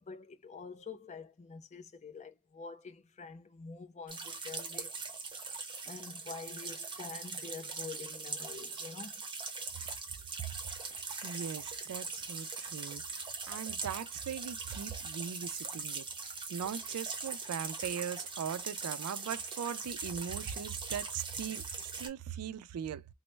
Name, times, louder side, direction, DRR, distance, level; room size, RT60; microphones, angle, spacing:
voice 1, 0.0-5.1 5.4-5.6 5.8-9.2, left 4 dB, 30° left, 0.5 m, -47 dB
sound 1, 4.1-22.1, right 4 dB, 20° right, 0.7 m, -41 dB
voice 2, 10.8-13.0 13.5-16.1 16.5-21.6 22.0-23.1, right 8 dB, 80° right, 0.4 m, -40 dB
3.0 x 2.0 x 3.2 m
head